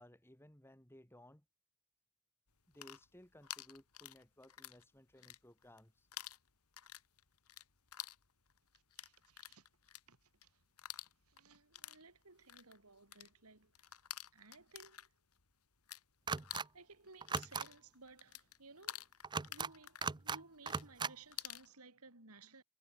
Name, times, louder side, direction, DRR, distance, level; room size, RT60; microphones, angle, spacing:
voice 1, 0.0-1.5 2.7-6.1, left 1 dB, 10° left, 4.0 m, -60 dB
sound 1, 2.6-4.8 5.1-5.8 6.1-16.0 16.3-21.7, left 12 dB, 85° left, 2.5 m, -50 dB
voice 2, 9.0-9.7 10.1-10.6 10.9-14.0 14.3-15.1 16.7-19.2 19.5-22.6, right 3 dB, 85° right, 4.7 m, -59 dB
sound 2, 16.3-16.7 17.2-17.7 19.2-19.7 20.0-20.4 20.7-21.1, right 5 dB, 20° right, 0.5 m, -38 dB
head